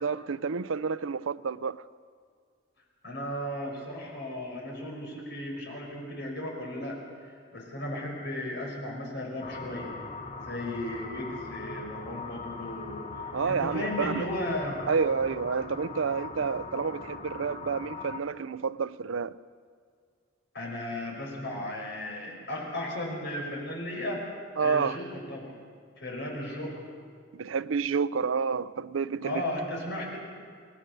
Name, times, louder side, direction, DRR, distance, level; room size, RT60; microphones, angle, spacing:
voice 1, 0.0-1.9 13.3-14.3 14.9-19.4 24.6-25.0 27.3-29.5, right 5 dB, 85° right, 0.6 m, -29 dB
voice 2, 3.0-9.9 10.4-14.8 20.5-24.2 24.6-25.5 26.0-26.8 29.2-30.2, left 1 dB, 60° left, 5.5 m, -35 dB
sound 1, 9.4-18.2, left 4 dB, 35° left, 1.5 m, -41 dB
29.5 x 19.5 x 6.7 m
head